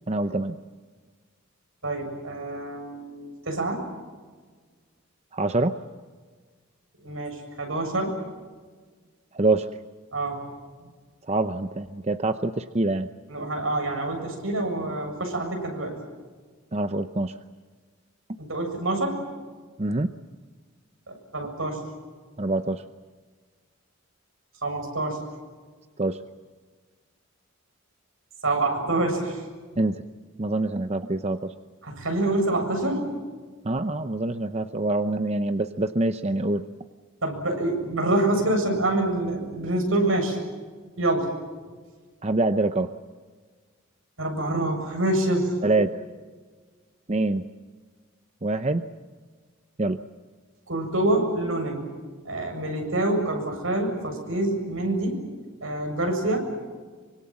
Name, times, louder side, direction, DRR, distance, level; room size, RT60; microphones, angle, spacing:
voice 1, 0.1-0.6 5.3-5.8 9.3-9.8 11.2-13.1 16.7-17.4 18.3-18.4 19.8-20.1 22.4-22.8 26.0-26.2 29.8-30.0 30.4-31.5 33.6-36.6 42.2-42.9 45.6-46.0 47.1-47.4 48.4-48.8 49.8-50.0, right 2 dB, 30° right, 9 dB, 0.7 m, -25 dB
voice 2, 1.8-3.8 7.0-8.2 10.1-10.5 10.8-10.9 13.3-16.0 18.4-19.2 21.1-21.8 24.6-25.2 28.4-29.5 31.8-33.1 37.2-40.4 41.0-41.3 44.2-45.5 50.7-51.9 52.3-55.2 55.6-56.4, right 2 dB, 75° right, 4 dB, 7.3 m, -26 dB
26.0 x 25.0 x 7.6 m, 1.5 s
head